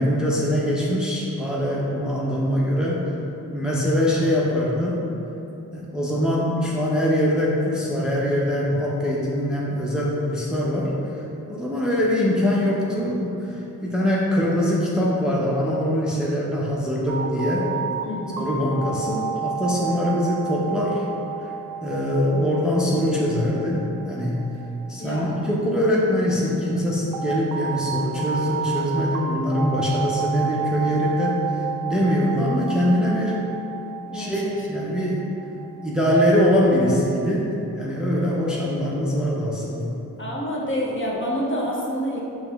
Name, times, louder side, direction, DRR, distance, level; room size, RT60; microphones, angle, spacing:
voice 1, 0.0-3.1 3.5-5.0 5.7-11.2 11.5-17.7 18.4-21.0 21.4-21.5 21.8-24.4 24.9-31.4 31.8-33.4 34.1-35.3 35.8-40.0, equal, ahead, -5 dB, 0.6 m, -23 dB
sound 1, 17.1-25.9 27.1-36.3, right 6 dB, 65° right, 0.5 m, -31 dB
voice 2, 18.1-18.4 25.0-25.5 34.1-34.6 40.2-42.2, equal, 30° left, -4 dB, 0.8 m, -28 dB
5.2 x 3.0 x 2.3 m, 2.9 s
supercardioid pair, 45°, 40 cm